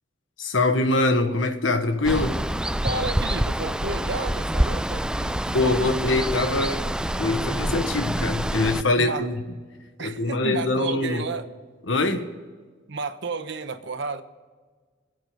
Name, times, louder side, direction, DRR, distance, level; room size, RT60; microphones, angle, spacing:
voice 1, 0.4-2.4 5.5-6.8 7.2-9.3 10.0-11.2 11.9-12.3, left 2 dB, 85° left, 1.5 m, -23 dB
Water, 2.0-8.8, right 1 dB, 5° right, 0.3 m, -26 dB
voice 2, 2.8-6.1 9.0-9.3 10.0-11.5 12.9-14.2, right 4 dB, 70° right, 1.1 m, -32 dB
24.5 x 8.7 x 5.1 m
head